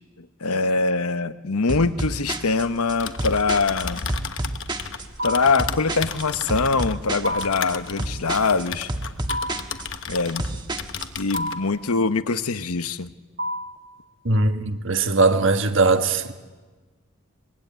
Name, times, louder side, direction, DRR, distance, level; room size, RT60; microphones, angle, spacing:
voice 1, 0.4-4.0 5.2-8.9 10.1-10.6 11.2-13.1, left 4 dB, 80° left, 1.0 m, -23 dB
sound 1, 1.7-11.2, right 1 dB, 20° right, 1.4 m, -31 dB
Typing, 2.8-10.5 10.8-11.6, left 6 dB, 55° left, 1.2 m, -34 dB
sound 2, 5.2-5.7 7.2-7.7 9.3-9.8 11.3-11.8 13.4-13.9, equal, 35° right, 1.3 m, -30 dB
voice 2, 14.2-16.3, right 3 dB, 55° right, 1.5 m, -20 dB
24.5 x 22.5 x 9.3 m
head